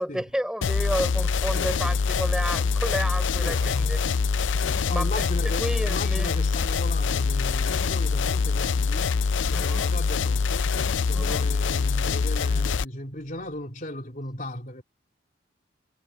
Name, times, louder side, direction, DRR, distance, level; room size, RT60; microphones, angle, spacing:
voice 1, 0.0-4.0 4.8-5.1 5.6-6.3 9.5-9.9 11.1-11.5, equal, 5° right, 4.5 m, -31 dB
sound 1, 0.6-12.8, left 5 dB, 85° left, 0.5 m, -24 dB
voice 2, 1.5-1.9 3.4-4.0 4.9-10.7 11.1-14.8, left 1 dB, 45° left, 3.2 m, -37 dB
head